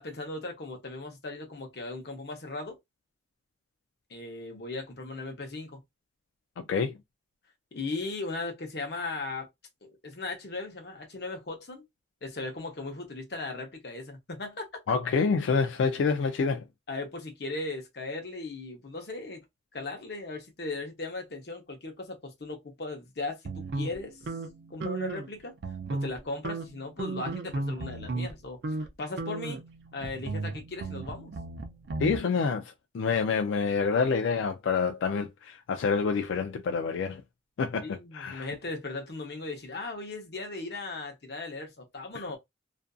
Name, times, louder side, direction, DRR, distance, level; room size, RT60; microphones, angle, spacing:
voice 1, 0.0-2.8 4.1-5.8 7.7-9.5 9.8-11.9 12.2-14.7 16.9-19.4 19.7-23.4 23.7-24.2 24.7-25.5 25.9-28.6 29.0-29.6 29.9-31.3 37.8-42.4, left 3 dB, 55° left, 0.7 m, -37 dB
voice 2, 6.6-7.0 14.9-16.6 32.0-37.2 37.6-38.5, left 5 dB, 80° left, 0.3 m, -27 dB
sound 1, 23.4-25.3 25.6-26.2 26.4-28.3 28.6-28.9 29.2-32.2, right 3 dB, 65° right, 0.4 m, -35 dB
2.5 x 2.4 x 2.2 m
head